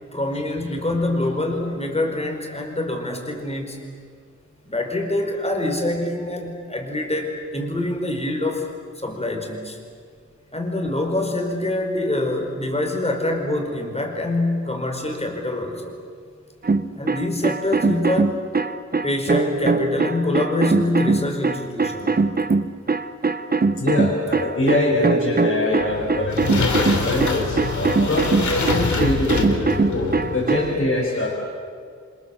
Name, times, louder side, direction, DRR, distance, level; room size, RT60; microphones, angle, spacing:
voice 1, 0.1-3.8 4.6-8.7 9.0-9.8 10.5-15.9 16.9-18.4 19.0-22.1, left 2 dB, 20° left, 3 dB, 4.7 m, -25 dB
sound 1, 16.6-30.7, right 4 dB, 30° right, 1.0 m, -22 dB
voice 2, 23.8-31.3, left 2 dB, 50° left, -5 dB, 5.7 m, -24 dB
sound 2, 25.8-30.8, left 4 dB, 80° left, 3.2 m, -26 dB
29.0 x 25.5 x 7.6 m, 2.1 s
wide cardioid pair, 115°, 29 cm